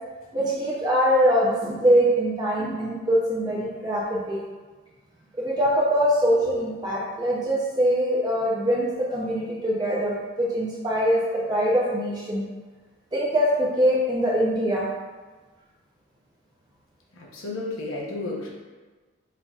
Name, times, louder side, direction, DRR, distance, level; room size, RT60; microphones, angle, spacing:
voice 1, 0.3-4.4 5.4-11.2 11.5-12.4 13.1-14.9, equal, 20° right, -7 dB, 0.6 m, -23 dB
voice 2, 17.1-18.5, left 2 dB, 75° left, -3 dB, 0.9 m, -32 dB
5.5 x 3.8 x 2.4 m, 1.3 s
head